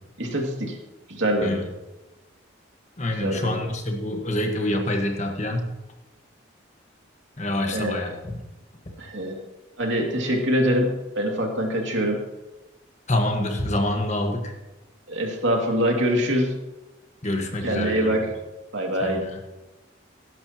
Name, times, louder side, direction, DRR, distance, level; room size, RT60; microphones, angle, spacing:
voice 1, 0.2-0.8 1.1-1.6 3.2-3.6 7.7-8.2 9.0-9.4 9.8-12.2 15.1-16.5 17.6-18.3 18.7-19.2, equal, 70° right, 1 dB, 2.5 m, -24 dB
voice 2, 3.0-5.7 7.4-8.1 13.1-14.5 17.2-18.1 19.0-19.4, left 1 dB, 35° left, 3 dB, 1.5 m, -26 dB
18.5 x 11.0 x 3.0 m, 1.1 s
head